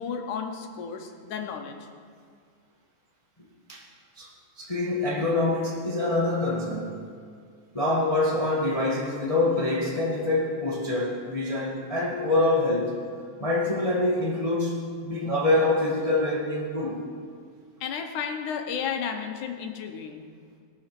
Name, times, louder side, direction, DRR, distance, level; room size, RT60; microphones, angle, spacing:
voice 1, 0.0-1.8 17.8-20.2, left 7 dB, 85° left, 4 dB, 2.6 m, -33 dB
voice 2, 4.6-7.1 7.7-13.0 13.4-17.0, left 2 dB, 20° left, -4 dB, 0.9 m, -25 dB
20.5 x 7.1 x 5.9 m, 2.1 s
omnidirectional pair, 3.4 m